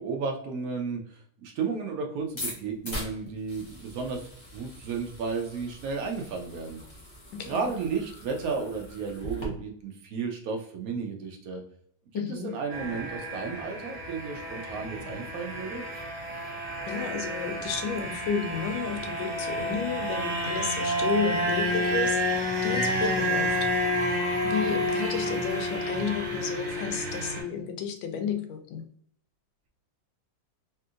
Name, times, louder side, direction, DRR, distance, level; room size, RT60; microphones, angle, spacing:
voice 1, 0.0-4.2 4.5-6.8 7.5-11.6 12.1-15.8, right 5 dB, 80° right, 2 dB, 0.8 m, -33 dB
sound 1, 2.2-9.5, left 1 dB, 35° left, 0.4 m, -42 dB
voice 2, 7.3-7.7 12.1-12.6 16.9-23.7 24.4-28.9, left 6 dB, 85° left, 7 dB, 1.3 m, -32 dB
sound 2, 12.7-27.4, equal, 30° right, 1.1 m, -30 dB
3.4 x 2.8 x 2.4 m, 0.63 s
omnidirectional pair, 2.1 m